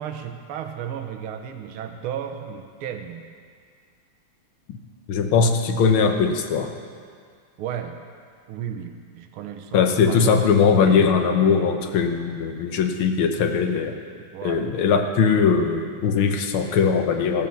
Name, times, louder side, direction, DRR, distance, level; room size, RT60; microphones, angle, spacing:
voice 1, 0.0-3.3 7.6-8.0 8.5-10.5 10.8-11.2 14.2-14.7, right 9 dB, 80° right, 5 dB, 1.8 m, -34 dB
voice 2, 5.1-6.7 9.7-14.0 14.4-17.5, left 5 dB, 75° left, 5 dB, 1.7 m, -20 dB
15.5 x 7.4 x 7.1 m, 2.1 s
omnidirectional pair, 2.4 m